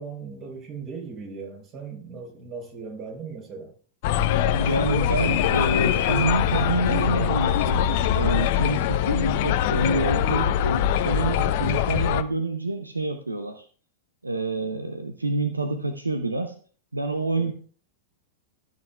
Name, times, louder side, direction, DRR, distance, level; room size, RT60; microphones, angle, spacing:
voice 1, 0.0-3.7 17.3-17.5, right 5 dB, 35° right, 1 dB, 4.2 m, -38 dB
sound 1, 4.0-12.2, left 10 dB, 50° left, 0.6 m, -23 dB
voice 2, 4.6-7.9 8.1-13.7 14.2-16.6 16.9-17.5, right 2 dB, 90° right, 7 dB, 0.7 m, -27 dB
14.0 x 6.7 x 2.4 m, 0.44 s
figure-of-eight pair, 95°, 0 cm